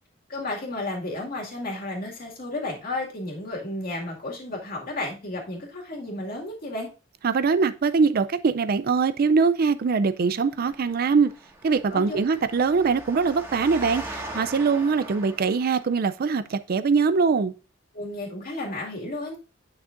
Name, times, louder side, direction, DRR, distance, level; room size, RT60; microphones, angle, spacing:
voice 1, 0.3-6.9 11.9-12.2 17.9-19.4, left 2 dB, 50° left, 2.2 m, -32 dB
voice 2, 7.2-11.3 11.6-17.5, right 5 dB, 50° right, 0.4 m, -22 dB
Engine, 10.5-16.1, right 1 dB, 10° right, 1.7 m, -40 dB
9.7 x 6.1 x 2.5 m
head